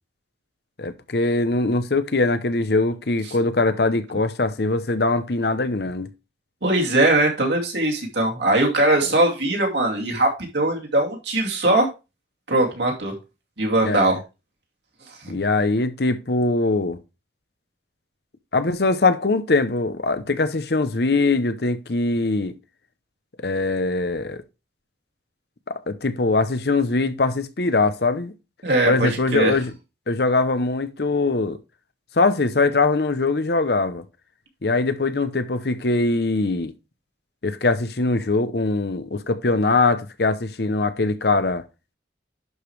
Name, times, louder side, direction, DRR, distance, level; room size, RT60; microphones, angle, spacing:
voice 1, 0.8-6.1 13.8-14.1 15.3-17.0 18.5-22.5 23.4-24.4 25.7-28.3 28.9-29.7 30.1-31.6 32.2-34.0 34.6-36.7 37.4-41.6, left 3 dB, 60° left, 0.8 m, -22 dB
voice 2, 6.6-11.9 12.5-13.1 13.6-14.2 15.2-15.4 28.6-29.6, right 2 dB, 70° right, 2.5 m, -20 dB
11.0 x 5.1 x 3.2 m
head